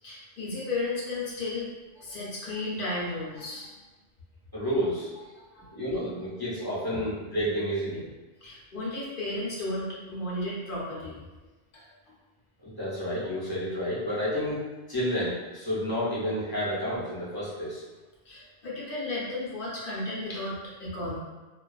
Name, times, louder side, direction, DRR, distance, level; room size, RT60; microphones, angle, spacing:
voice 1, 0.0-3.7 5.3-5.7 8.4-11.2 11.7-11.9 18.3-21.2, left 2 dB, 55° left, -6 dB, 0.8 m, -34 dB
voice 2, 4.5-5.1 5.7-8.1 12.6-14.6 14.9-17.8, equal, 25° left, -10 dB, 0.7 m, -30 dB
2.4 x 2.3 x 2.3 m, 1.2 s
omnidirectional pair, 1.2 m